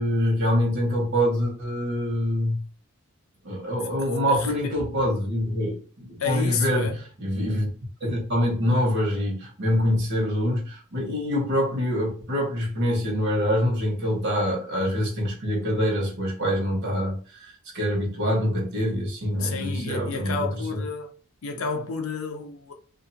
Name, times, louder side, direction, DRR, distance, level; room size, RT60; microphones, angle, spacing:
voice 1, 0.0-2.6 3.4-6.9 7.2-7.7 8.0-20.8, equal, 55° right, 1.1 m, -25 dB
voice 2, 4.3-4.8 6.2-7.0 19.4-21.1 21.4-22.7, left 5 dB, 85° left, 0.6 m, -30 dB
2.5 x 2.4 x 2.8 m
head